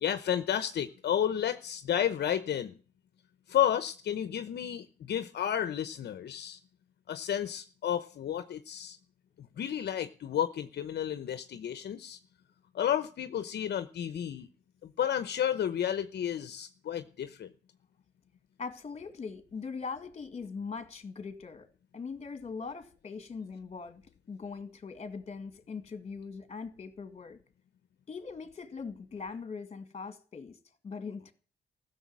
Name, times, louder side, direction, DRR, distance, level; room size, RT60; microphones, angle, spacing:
voice 1, 0.0-2.7 3.5-6.6 7.1-9.0 9.4-12.2 12.7-14.5 14.8-17.5, left 10 dB, 70° left, 0.9 m, -32 dB
voice 2, 18.6-21.7 21.9-24.0 24.3-27.4 28.1-30.6 30.8-31.3, left 5 dB, 35° left, 2.0 m, -41 dB
15.5 x 6.9 x 9.6 m
cardioid pair, 120°, 18 cm